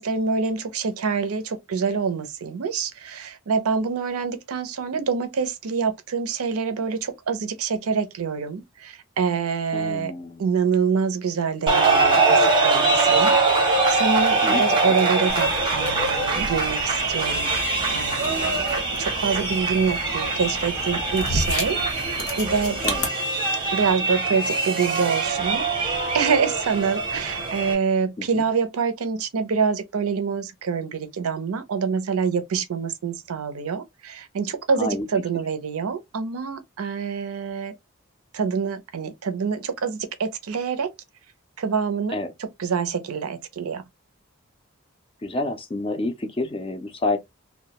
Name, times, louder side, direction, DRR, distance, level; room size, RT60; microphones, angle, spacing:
voice 1, 0.0-10.1 10.4-17.5 17.9-18.7 19.0-22.8 23.7-37.7 38.3-40.9 41.6-42.2 42.6-43.8, right 5 dB, 85° right, 0.5 m, -26 dB
voice 2, 9.7-10.4 14.4-14.6 22.8-23.0 28.2-28.4 34.8-35.1 42.1-42.3 45.2-47.2, left 2 dB, 25° left, 0.3 m, -28 dB
sound 1, 11.7-27.7, right 3 dB, 20° right, 0.6 m, -23 dB
sound 2, 15.3-23.1, left 2 dB, 90° left, 0.9 m, -33 dB
2.2 x 2.0 x 2.8 m
head